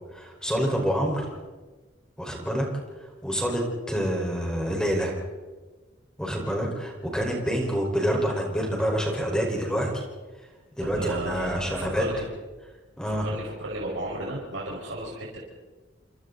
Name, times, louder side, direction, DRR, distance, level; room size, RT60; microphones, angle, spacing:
voice 1, 0.1-1.2 2.2-2.6 3.2-5.2 6.2-10.0 10.8-12.2 13.0-13.3, equal, 5° left, 0 dB, 5.0 m, -27 dB
voice 2, 10.8-12.2 13.2-15.4, right 1 dB, 80° right, -4 dB, 5.4 m, -33 dB
29.0 x 26.5 x 4.1 m, 1.3 s
head